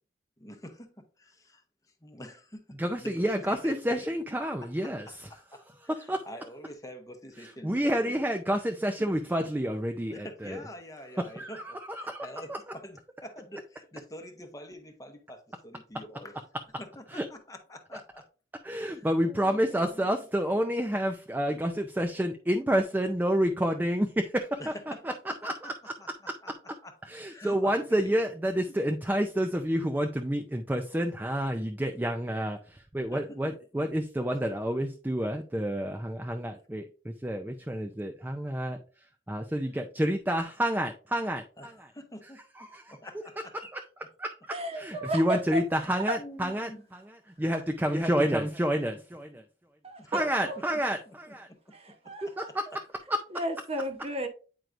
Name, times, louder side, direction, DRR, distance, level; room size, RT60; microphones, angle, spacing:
voice 1, 0.4-1.6 2.0-2.6 3.0-4.1 4.4-8.1 9.0-9.1 10.1-16.4 16.8-18.3 18.7-20.1 21.5-21.6 24.6-25.7 26.0-26.5 26.8-26.9 27.3-28.2 33.1-33.2 41.6-42.4 42.9-43.5 46.2-46.8 50.0-50.2 50.6-50.7 51.1-51.6 52.0-52.1, equal, 20° left, 0.8 m, -46 dB
voice 2, 2.8-5.3 5.9-6.2 7.4-10.6 11.4-12.6 17.1-17.2 18.6-24.6 25.0-25.1 25.4-25.9 27.1-38.8 39.3-41.9 42.6-43.0 43.5-49.4 50.1-51.5 52.2-52.6 53.1-53.2, equal, 10° right, 0.4 m, -29 dB
voice 3, 44.5-45.6 49.8-50.6 51.7-52.5 53.3-54.3, equal, 35° right, 1.0 m, -34 dB
9.0 x 4.6 x 2.6 m
head